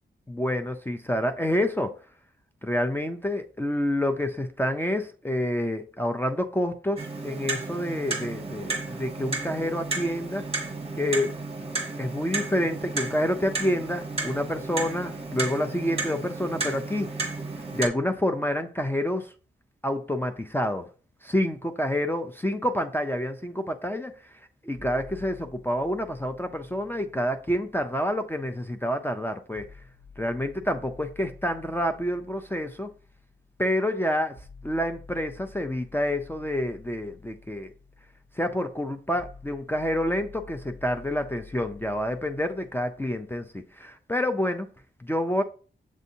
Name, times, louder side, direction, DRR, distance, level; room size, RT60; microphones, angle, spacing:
voice 1, 0.3-1.9 2.6-10.4 11.0-11.3 12.0-17.3 17.7-19.3 19.8-20.9 21.2-24.1 24.6-29.7 30.2-32.9 33.6-34.4 34.6-37.7 38.4-44.7 45.0-45.4, left 1 dB, 10° left, 0.3 m, -28 dB
Clock, 7.0-17.9, right 3 dB, 30° right, 0.9 m, -33 dB
sound 1, 24.7-28.7 29.5-43.6, left 4 dB, 35° left, 1.1 m, -50 dB
7.2 x 2.7 x 2.6 m
wide cardioid pair, 100°, 20 cm